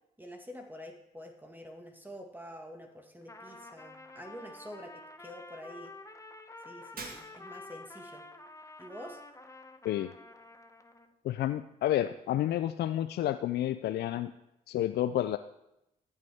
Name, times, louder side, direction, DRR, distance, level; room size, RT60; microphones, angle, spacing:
voice 1, 0.2-5.9 6.6-8.2 8.8-9.2, equal, 10° right, 3 dB, 1.7 m, -47 dB
Trumpet, 3.2-11.1, left 2 dB, 15° left, 1.0 m, -49 dB
Shatter, 7.0-7.8, right 3 dB, 55° right, 1.9 m, -45 dB
voice 2, 11.2-14.3 14.7-15.4, left 12 dB, 65° left, 11 dB, 0.4 m, -30 dB
14.0 x 8.1 x 3.5 m, 0.87 s
hypercardioid pair, 40°, 18 cm